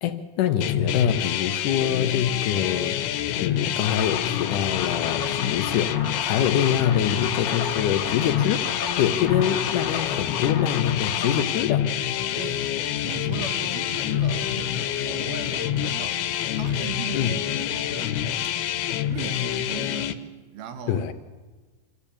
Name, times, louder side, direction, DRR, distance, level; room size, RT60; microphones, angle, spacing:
voice 1, 0.0-3.0 3.4-8.6 9.0-11.9 17.1-17.4 20.9-21.1, left 10 dB, 75° left, 8 dB, 2.0 m, -25 dB
sound 1, 0.6-20.1, left 10 dB, 90° left, 2.8 m, -27 dB
sound 2, 3.8-11.4, left 4 dB, 40° left, 1.3 m, -34 dB
voice 2, 12.3-12.7 13.0-16.2 16.5-18.5 18.9-20.2 20.5-21.1, right 6 dB, 75° right, 8 dB, 3.4 m, -38 dB
25.5 x 14.0 x 8.5 m, 1.3 s
omnidirectional pair, 4.4 m